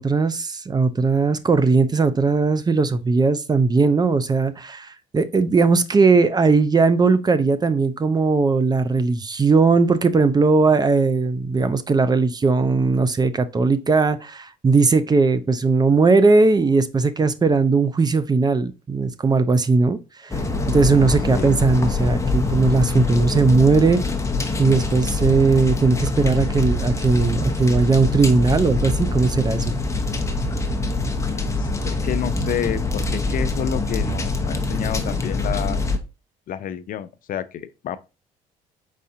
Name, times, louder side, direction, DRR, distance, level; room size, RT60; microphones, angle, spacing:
voice 1, 0.0-20.4 20.7-24.0 24.6-29.7, right 4 dB, 25° right, 0.5 m, -18 dB
sound 1, 20.3-36.0, left 2 dB, 15° left, 0.9 m, -24 dB
voice 2, 31.2-35.8 36.5-38.0, left 9 dB, 55° left, 0.5 m, -30 dB
4.7 x 4.2 x 2.7 m
supercardioid pair, 80°, 17 cm